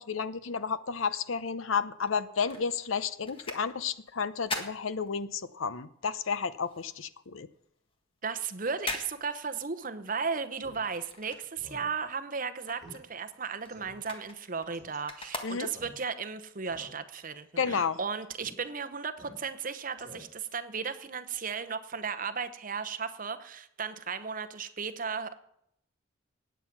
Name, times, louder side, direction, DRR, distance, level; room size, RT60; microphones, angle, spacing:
voice 1, 0.0-7.5 15.4-15.7 17.6-18.0, left 6 dB, 85° left, 15 dB, 0.7 m, -32 dB
sound 1, 2.0-5.7 6.0-12.0 12.3-16.1 16.6-16.7, left 2 dB, 25° left, 1.6 m, -42 dB
voice 2, 8.2-25.3, right 5 dB, 40° right, 11 dB, 0.9 m, -35 dB
Speech synthesizer, 10.6-10.8 11.2-11.3 11.6-11.9 12.2-12.3 12.8-13.0 13.3-13.4 13.7-14.0 14.7-15.0 15.7-16.3 16.6-17.2 17.6-17.8 18.4-18.5 19.2-19.7 20.0-20.5, equal, 15° right, 3.6 m, -50 dB
16.0 x 9.4 x 6.0 m, 0.75 s
head